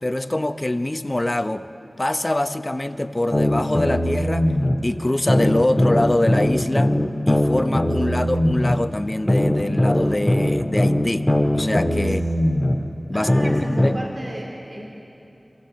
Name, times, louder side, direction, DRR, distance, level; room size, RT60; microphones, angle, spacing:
voice 1, 0.0-1.7 2.0-4.5 4.8-6.9 7.3-11.3 11.5-12.3 13.1-13.9, left 1 dB, 30° left, 8 dB, 0.9 m, -24 dB
sound 1, 3.3-4.7 5.3-8.8 9.3-12.7 13.3-13.9, left 1 dB, 5° right, 2.6 m, -20 dB
voice 2, 13.1-14.9, right 1 dB, 55° right, -2 dB, 3.2 m, -35 dB
27.0 x 15.0 x 7.8 m, 2.9 s
wide cardioid pair, 60°, 0 cm